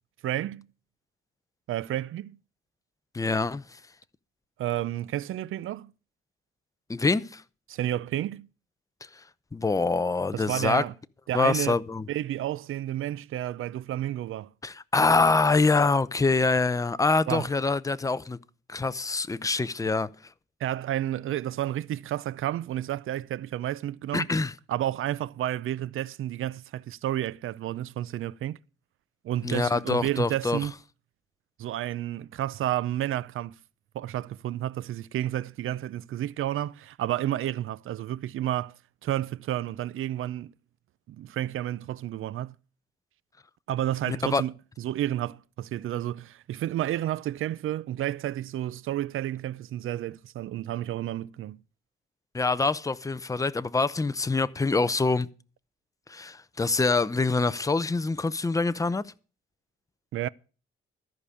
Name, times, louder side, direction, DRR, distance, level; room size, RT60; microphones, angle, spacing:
voice 1, 0.2-0.7 1.7-2.4 4.6-5.9 7.7-8.5 10.3-10.9 11.3-11.7 12.1-14.5 17.3-17.5 20.6-24.3 24.7-28.6 29.2-30.7 31.6-33.5 33.9-38.7 39.0-40.5 41.1-42.6 43.7-51.6 60.1-60.3, right 12 dB, 75° right, 0.5 m, -31 dB
voice 2, 3.1-3.6 6.9-7.4 9.5-10.8 11.3-12.1 14.6-18.4 18.7-20.1 24.1-24.5 29.4-30.6 44.1-44.4 52.3-55.3 56.1-59.0, left 3 dB, 15° left, 0.6 m, -25 dB
14.0 x 5.2 x 8.4 m
cardioid pair, 85°, 21 cm